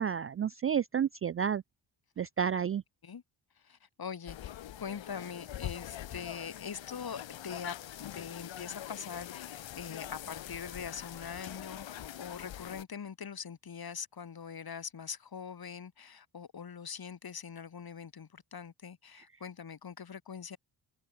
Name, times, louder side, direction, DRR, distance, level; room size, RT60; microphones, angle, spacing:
voice 1, 0.0-1.6 2.2-2.8, right 8 dB, 30° right, 0.4 m, -30 dB
voice 2, 3.6-20.6, left 7 dB, 50° left, 3.8 m, -43 dB
sound 1, 4.3-12.8, left 11 dB, 70° left, 1.7 m, -44 dB
cardioid pair, 70°, 46 cm